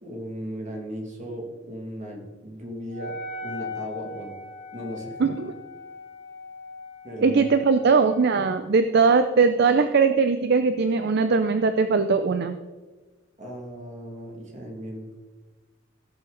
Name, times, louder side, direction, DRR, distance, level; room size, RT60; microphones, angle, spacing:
voice 1, 0.0-3.2 3.4-4.3 4.7-5.2 7.0-7.5 13.4-15.1, equal, 40° right, 1 dB, 2.3 m, -36 dB
Wind instrument woodwind instrument, 2.9-8.7, left 3 dB, 60° left, 2.1 m, -39 dB
voice 2, 5.2-5.5 7.2-12.6, right 4 dB, 55° right, 9 dB, 0.5 m, -20 dB
17.0 x 6.9 x 3.9 m, 1.3 s
head